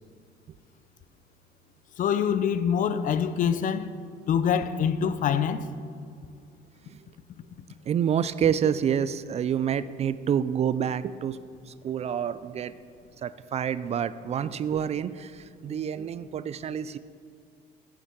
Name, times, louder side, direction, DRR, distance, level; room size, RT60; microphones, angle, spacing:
voice 1, 2.0-3.9 4.3-5.6, left 8 dB, 50° left, 0.5 m, -25 dB
voice 2, 7.9-11.4 11.7-12.7 13.2-17.0, right 8 dB, 40° right, 0.4 m, -28 dB
9.9 x 7.1 x 5.9 m
cardioid pair, 110°, 17 cm